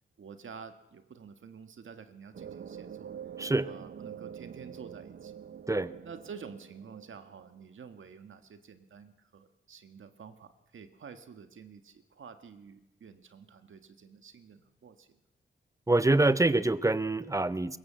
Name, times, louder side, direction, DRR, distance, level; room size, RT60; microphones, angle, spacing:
voice 1, 0.2-3.1 3.6-5.3 6.0-15.2, right 6 dB, 75° right, 8 dB, 1.8 m, -49 dB
sound 1, 2.3-7.6, right 8 dB, 55° right, 0.7 m, -46 dB
voice 2, 3.4-3.7 5.7-5.9 15.9-17.8, right 2 dB, 15° right, 15 dB, 0.8 m, -25 dB
23.0 x 22.0 x 7.6 m, 0.93 s
wide cardioid pair, 135°, 20 cm